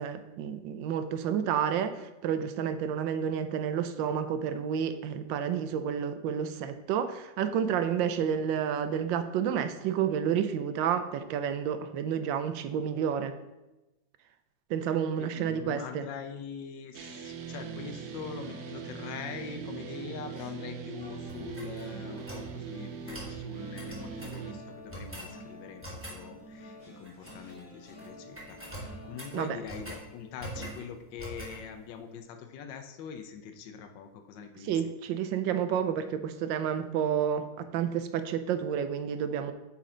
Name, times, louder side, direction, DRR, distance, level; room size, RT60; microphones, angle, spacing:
voice 1, 0.0-13.4 14.7-16.0 29.3-29.6 34.6-39.5, right 8 dB, 90° right, 10 dB, 1.3 m, -30 dB
voice 2, 15.2-34.9, left 6 dB, 80° left, 6 dB, 1.4 m, -43 dB
sound 1, 16.9-24.5, right 8 dB, 65° right, 1.0 m, -41 dB
sound 2, 17.5-32.7 33.1-33.3 33.6-33.8, equal, 50° left, 3.0 m, -51 dB
sound 3, 21.3-22.5 23.1-23.3 23.7-24.4 24.9-25.3 25.8-26.2 27.0-27.6 27.9-28.1 28.3-30.0 30.4-30.8 31.2-31.6, right 1 dB, 10° right, 1.2 m, -43 dB
8.4 x 4.3 x 3.7 m, 1.0 s
omnidirectional pair, 2.0 m